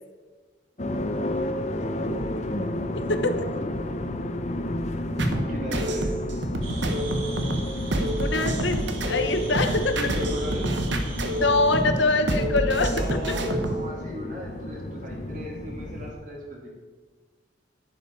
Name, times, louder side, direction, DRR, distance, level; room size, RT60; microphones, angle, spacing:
sound 1, 0.8-16.1, left 1 dB, 35° left, 0.7 m, -32 dB
sound 2, 5.2-13.9, right 1 dB, 60° right, 1.2 m, -28 dB
voice 1, 5.3-6.1 10.0-10.7 12.9-16.7, equal, 40° right, -2 dB, 3.0 m, -37 dB
sound 3, 6.6-11.8, equal, 85° right, 1.9 m, -35 dB
voice 2, 8.0-10.1 11.4-13.3, left 3 dB, 65° left, 8 dB, 1.0 m, -24 dB
11.5 x 10.0 x 4.9 m, 1.4 s
head